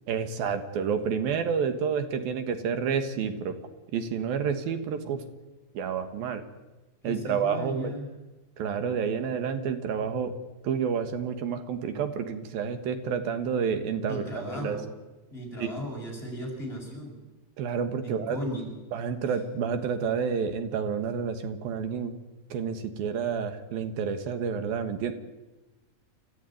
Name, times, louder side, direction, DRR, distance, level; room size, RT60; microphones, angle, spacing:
voice 1, 0.1-3.6 3.9-5.2 5.7-6.4 7.0-7.9 8.6-10.3 10.6-14.8 15.6-15.9 17.6-18.4 18.9-22.1 22.5-25.2, right 6 dB, 70° right, 9 dB, 3.2 m, -29 dB
voice 2, 7.0-8.1 14.1-14.9 15.3-17.2 18.0-18.7 19.2-19.3, equal, 15° left, 0 dB, 7.1 m, -36 dB
29.0 x 14.0 x 9.3 m, 1.1 s
omnidirectional pair, 4.5 m